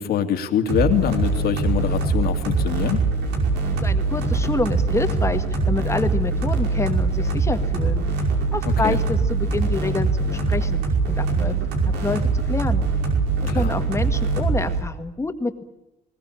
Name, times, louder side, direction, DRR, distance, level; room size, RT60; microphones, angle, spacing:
voice 1, 0.0-3.1 8.8-9.0 13.5-13.7, left 9 dB, 65° left, 6 dB, 2.6 m, -24 dB
sound 1, 0.7-14.8, right 3 dB, 90° right, 5.4 m, -22 dB
voice 2, 3.7-8.0 8.5-11.7 12.0-12.8 13.5-15.6, left 3 dB, 15° left, 8 dB, 1.8 m, -27 dB
21.0 x 19.0 x 8.8 m, 0.95 s
cardioid pair, 110°, 17 cm